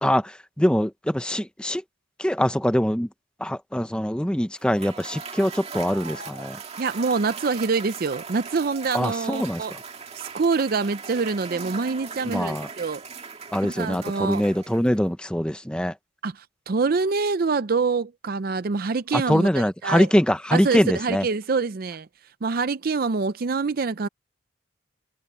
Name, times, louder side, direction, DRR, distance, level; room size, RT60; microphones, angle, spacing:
voice 1, 0.0-1.8 2.2-3.1 3.4-6.6 8.9-9.6 12.2-12.7 13.5-15.9 19.1-21.2, equal, 5° left, 0.9 m, -23 dB
Cheering / Applause / Crowd, 4.6-15.1, right 5 dB, 30° right, 2.2 m, -39 dB
voice 2, 6.8-9.7 10.1-13.0 13.8-14.5 16.2-20.1 20.5-22.1 22.4-24.1, right 4 dB, 45° right, 0.5 m, -25 dB
head